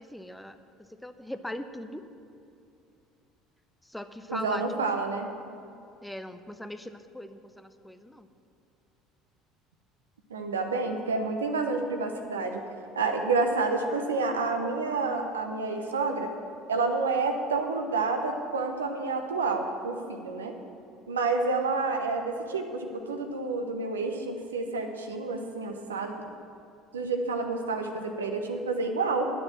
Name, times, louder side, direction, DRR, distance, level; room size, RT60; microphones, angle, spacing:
voice 1, 0.0-2.1 3.8-4.7 6.0-8.3, left 1 dB, 5° left, 10 dB, 0.6 m, -40 dB
voice 2, 4.3-5.3 10.3-12.6 12.9-16.3 16.7-20.5 21.1-26.1 26.9-29.3, right 3 dB, 85° right, 4 dB, 0.8 m, -29 dB
9.7 x 6.9 x 7.3 m, 2.6 s
hypercardioid pair, 65°, 0 cm